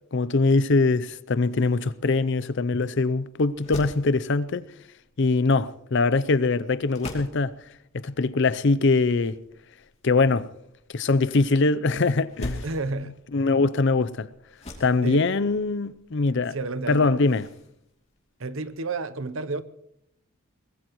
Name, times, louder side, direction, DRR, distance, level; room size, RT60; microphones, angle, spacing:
voice 1, 0.1-4.7 5.2-7.5 7.9-9.4 10.0-10.5 10.9-12.6 13.3-14.3 14.8-16.6 16.9-17.5, left 3 dB, 50° left, 0.5 m, -22 dB
sound 1, 1.2-18.9, left 1 dB, 30° left, 2.7 m, -45 dB
voice 2, 12.6-13.2 15.0-15.2 16.5-17.1 18.4-19.6, right 3 dB, 60° right, 0.8 m, -30 dB
23.0 x 19.5 x 3.1 m
head